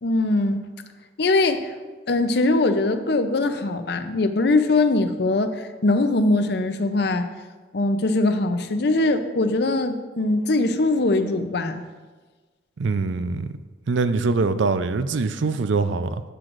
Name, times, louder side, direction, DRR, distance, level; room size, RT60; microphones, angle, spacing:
voice 1, 0.0-0.6 1.2-1.7 2.1-7.3 7.7-11.8, left 2 dB, 60° left, 9 dB, 0.6 m, -21 dB
voice 2, 12.8-13.5 13.9-16.2, right 4 dB, 75° right, 11 dB, 0.5 m, -23 dB
13.5 x 7.8 x 2.5 m, 1.4 s
head